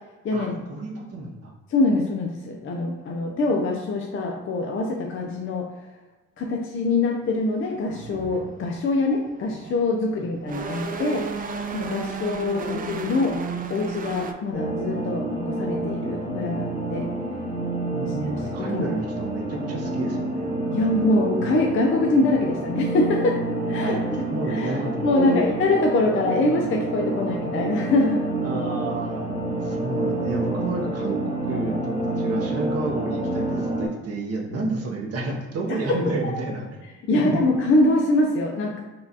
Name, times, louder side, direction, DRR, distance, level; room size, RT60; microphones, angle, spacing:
voice 1, 0.3-1.5 17.9-20.5 23.8-24.0 24.3-25.4 28.4-29.3 29.6-36.7 37.1-37.5, right 2 dB, 55° right, -1 dB, 0.7 m, -30 dB
voice 2, 1.7-5.7 6.4-11.2 11.7-13.4 13.7-17.1 18.2-18.3 18.6-18.9 20.7-23.4 23.7-24.0 24.5-28.2 35.9-36.0 37.1-38.8, left 2 dB, 45° left, 0 dB, 0.5 m, -24 dB
sound 1, 7.2-7.3 7.8-10.0 10.3-14.3, right 5 dB, 30° right, 0.3 m, -33 dB
sound 2, 14.5-33.9, right 2 dB, 20° left, 0.8 m, -28 dB
4.2 x 2.3 x 2.7 m, 1.2 s
cardioid pair, 90°, 30 cm